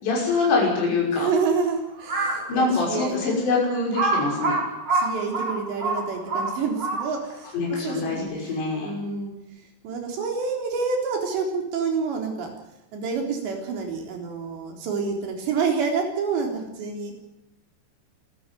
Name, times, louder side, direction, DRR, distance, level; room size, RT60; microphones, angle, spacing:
voice 1, 0.0-1.3 2.5-4.6 7.5-8.9, left 3 dB, 85° left, -2 dB, 8.3 m, -24 dB
voice 2, 1.1-3.3 4.9-7.5 7.8-8.5 8.8-9.3 9.8-12.5 12.9-17.1, right 5 dB, 85° right, 2 dB, 6.1 m, -28 dB
Crow, 2.0-2.5 3.1-3.2 3.9-7.3, right 3 dB, 35° right, 7.2 m, -25 dB
25.5 x 14.5 x 9.4 m, 0.85 s
omnidirectional pair, 4.9 m